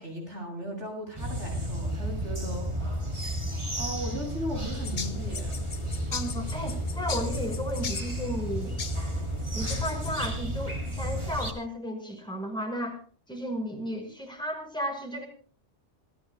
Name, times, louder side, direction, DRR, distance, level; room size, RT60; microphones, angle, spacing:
voice 1, 0.0-3.0 3.7-5.6, equal, 70° right, 1 dB, 8.1 m, -37 dB
sound 1, 1.1-11.5, equal, 25° right, 2.8 m, -32 dB
sound 2, 4.7-10.3, left 6 dB, 45° left, 1.0 m, -40 dB
voice 2, 6.1-8.8 9.5-13.0 13.3-15.3, equal, 5° left, 1 dB, 5.6 m, -34 dB
27.5 x 16.0 x 2.2 m, 0.42 s
omnidirectional pair, 1.2 m